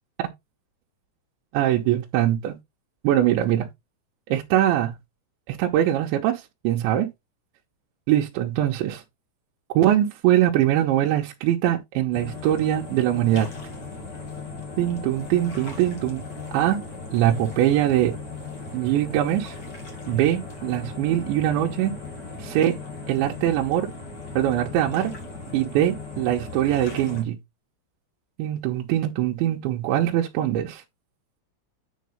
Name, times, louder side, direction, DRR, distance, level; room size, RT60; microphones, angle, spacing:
voice 1, 1.5-2.6 3.0-3.7 4.3-4.9 5.5-7.1 8.1-9.0 9.7-13.5 14.8-16.2 16.5-16.8 17.1-18.1 18.7-19.6 20.1-21.9 22.4-22.8 23.1-23.9 24.4-25.1 25.5-27.4 28.4-30.8, right 12 dB, 80° right, 3.2 m, -22 dB
sound 1, 12.1-27.2, left 4 dB, 40° left, 1.5 m, -37 dB
9.5 x 5.3 x 3.3 m
omnidirectional pair, 5.6 m